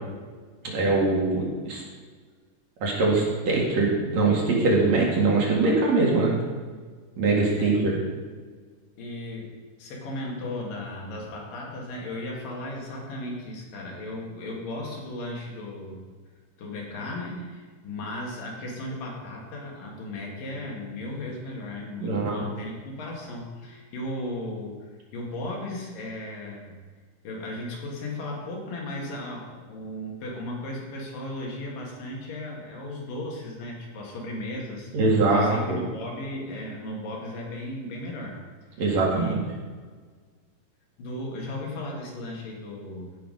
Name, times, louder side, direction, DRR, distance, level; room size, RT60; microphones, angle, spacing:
voice 1, 0.7-1.8 2.8-6.3 7.2-7.9 22.0-22.5 34.9-35.8 38.8-39.4, right 3 dB, 60° right, -3 dB, 3.1 m, -22 dB
voice 2, 7.5-7.9 9.0-9.5 9.8-16.0 16.6-26.8 27.2-34.9 35.3-38.4 38.7-39.4 41.0-43.2, left 1 dB, 85° left, -2 dB, 3.7 m, -36 dB
16.0 x 5.8 x 5.2 m, 1.5 s
omnidirectional pair, 3.8 m